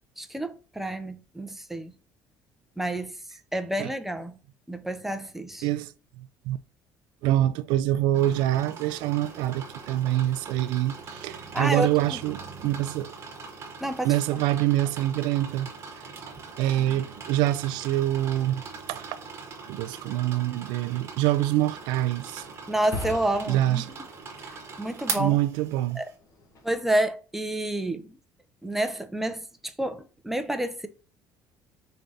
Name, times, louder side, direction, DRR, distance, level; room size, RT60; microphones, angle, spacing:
voice 1, 0.2-1.9 2.8-4.4 4.7-5.7 11.5-12.2 13.8-14.2 22.7-23.8 24.4-24.5 24.8-25.4 26.0-26.1 26.6-28.2 28.6-30.9, right 1 dB, 5° right, 0.4 m, -29 dB
voice 2, 5.6-5.9 6.5-6.6 7.2-13.1 14.0-15.7 16.6-18.6 18.9-19.2 19.7-22.4 23.5-23.8 25.2-26.0, right 14 dB, 90° right, 0.3 m, -25 dB
sound 1, 8.1-26.1, right 5 dB, 35° right, 1.1 m, -41 dB
sound 2, 21.0-26.8, left 3 dB, 50° left, 1.1 m, -43 dB
4.8 x 3.3 x 2.6 m
cardioid pair, 140°, 7 cm